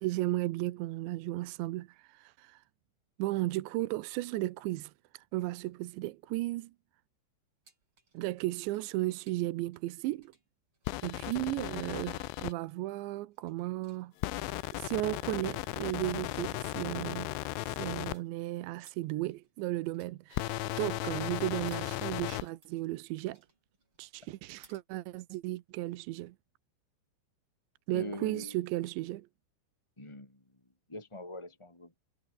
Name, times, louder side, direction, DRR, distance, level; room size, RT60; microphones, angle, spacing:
voice 1, 0.0-2.6 3.2-6.7 8.1-10.3 11.0-14.1 14.7-17.3 17.7-23.4 24.0-26.4 27.9-29.3, right 18 dB, 80° right, 3.0 m, -35 dB
sound 1, 7.6-24.8, right 3 dB, 25° right, 5.9 m, -66 dB
sound 2, 10.9-12.5 14.2-18.2 20.3-22.4, left 21 dB, 85° left, 3.1 m, -36 dB
voice 2, 27.9-28.6 30.0-30.4 30.9-31.9, left 1 dB, 15° left, 1.2 m, -43 dB
omnidirectional pair, 5.5 m